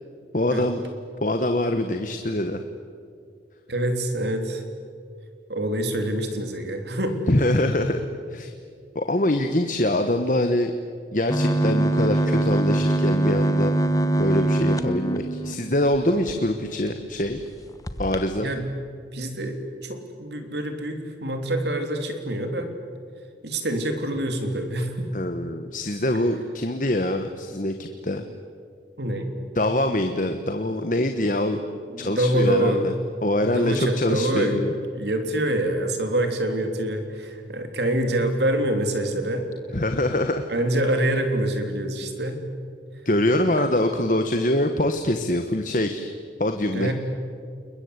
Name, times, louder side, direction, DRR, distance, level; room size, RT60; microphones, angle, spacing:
voice 1, 0.3-0.8 1.2-2.6 7.3-8.5 8.9-10.7 11.1-13.7 14.1-17.5 18.0-18.5 25.1-28.3 29.5-31.6 32.0-32.9 33.2-34.7 39.7-40.4 43.0-46.1 46.4-46.9, left 1 dB, 45° left, 7 dB, 1.3 m, -24 dB
voice 2, 3.7-4.6 5.5-7.2 18.4-18.6 19.1-22.7 23.4-25.1 29.0-29.3 31.9-32.9 33.5-39.5 40.5-42.4 43.6-43.8 46.7-46.9, right 1 dB, 75° right, 5 dB, 3.3 m, -26 dB
sound 1, 11.3-16.3 16.9-17.0 17.2-17.4 17.9-18.2, right 1 dB, 20° left, 1.0 m, -23 dB
29.5 x 22.0 x 8.2 m, 2.3 s
head